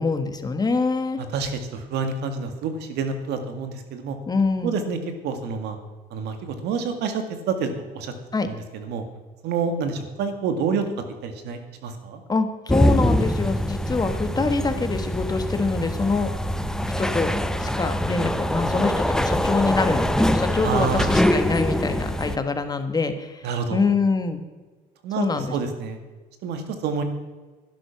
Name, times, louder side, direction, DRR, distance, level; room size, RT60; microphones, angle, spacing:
voice 1, 0.0-1.2 4.3-4.9 8.3-8.5 12.3-16.3 17.0-17.3 17.6-24.4 25.2-25.5, left 4 dB, 25° left, 8 dB, 1.6 m, -25 dB
voice 2, 1.2-4.2 4.6-5.0 5.2-5.8 6.1-8.1 8.4-9.0 9.4-10.9 11.2-12.2 20.6-21.2 23.4-23.9 25.0-26.0 26.4-27.0, right 5 dB, 80° right, 7 dB, 2.1 m, -28 dB
sound 1, 12.7-22.4, equal, 5° left, 0.7 m, -23 dB
12.0 x 11.0 x 6.0 m, 1.3 s
cardioid pair, 110°, 17 cm